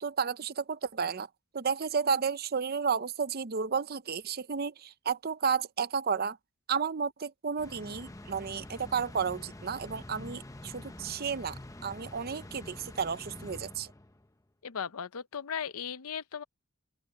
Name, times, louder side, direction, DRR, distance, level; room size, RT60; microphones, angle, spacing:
voice 1, 0.0-1.3 1.5-6.4 6.7-13.9, right 6 dB, 45° right, 0.6 m, -32 dB
sound 1, 7.6-14.3, left 1 dB, 15° left, 0.8 m, -46 dB
voice 2, 14.6-16.4, left 7 dB, 75° left, 0.6 m, -37 dB
open air
head